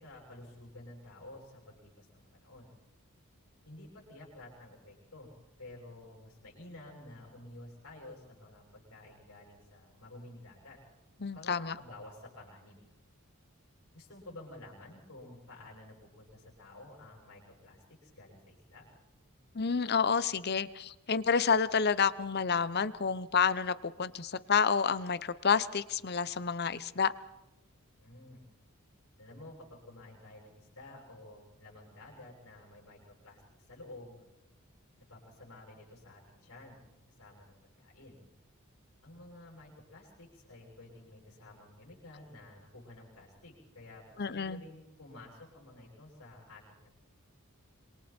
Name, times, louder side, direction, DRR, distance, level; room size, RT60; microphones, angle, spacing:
voice 1, 0.0-2.7 3.7-5.3 5.6-10.8 11.3-12.8 13.9-18.9 28.0-28.4 29.2-33.4 33.7-34.2 35.1-36.8 37.2-38.2 39.0-46.9, left 2 dB, 80° left, -3 dB, 7.7 m, -51 dB
voice 2, 11.2-11.8 19.5-27.1 44.2-44.6, left 6 dB, 50° left, 16 dB, 0.8 m, -29 dB
26.5 x 26.0 x 4.5 m, 0.98 s
head